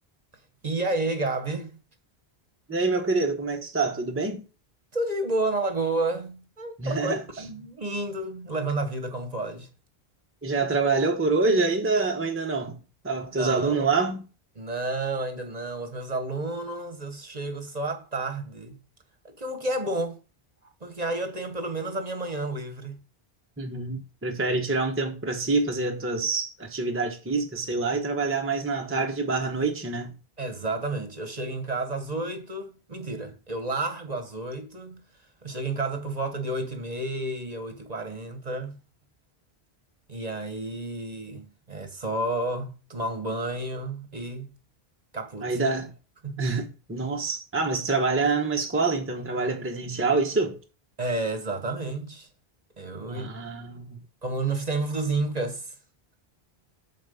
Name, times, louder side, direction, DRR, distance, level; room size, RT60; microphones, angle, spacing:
voice 1, 0.6-1.8 4.9-9.7 13.4-13.9 14.5-18.8 19.2-20.2 20.6-23.0 30.4-35.0 35.4-38.8 40.1-44.5 45.1-45.6 46.2-46.4 51.0-52.3 52.8-53.3 54.2-55.8, right 2 dB, 40° right, 1.1 m, -31 dB
voice 2, 2.7-4.4 6.8-7.2 10.4-12.7 13.0-14.2 23.6-30.1 45.4-45.9 46.4-50.6 53.1-54.0, right 3 dB, 15° right, 0.9 m, -26 dB
7.4 x 4.2 x 6.9 m
omnidirectional pair, 1.1 m